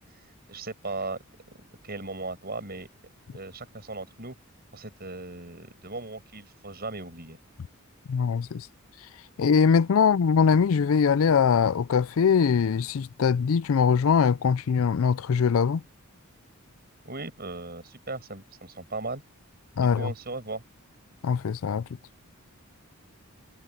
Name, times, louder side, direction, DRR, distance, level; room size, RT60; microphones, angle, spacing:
voice 1, 0.5-1.2 1.8-2.9 3.3-4.3 4.7-7.4 17.0-19.2 19.8-20.6, right 3 dB, 45° right, 6.2 m, -37 dB
voice 2, 8.1-8.7 9.4-15.8 19.8-20.1 21.2-21.8, left 6 dB, 65° left, 0.4 m, -22 dB
head